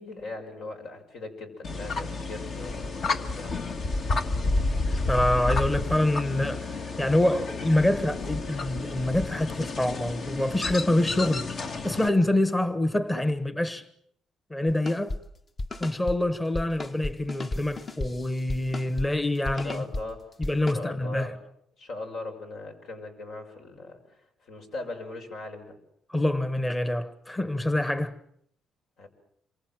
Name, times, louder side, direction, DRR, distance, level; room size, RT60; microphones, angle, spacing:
voice 1, 0.0-3.6 19.4-20.3 20.7-21.4 21.8-25.8 29.0-29.1, left 2 dB, 75° left, 6.3 m, -39 dB
sound 1, 1.6-12.1, left 3 dB, 55° left, 1.9 m, -30 dB
voice 2, 5.1-13.8 14.5-15.2 15.8-19.9 20.4-21.3 26.1-28.1, left 1 dB, 15° left, 1.3 m, -26 dB
sound 2, 14.7-15.2 15.6-16.2 16.5-19.1 19.4-20.0 20.4-20.7, left 2 dB, 35° left, 1.2 m, -33 dB
27.5 x 24.0 x 7.7 m
cardioid pair, 90°, 0 cm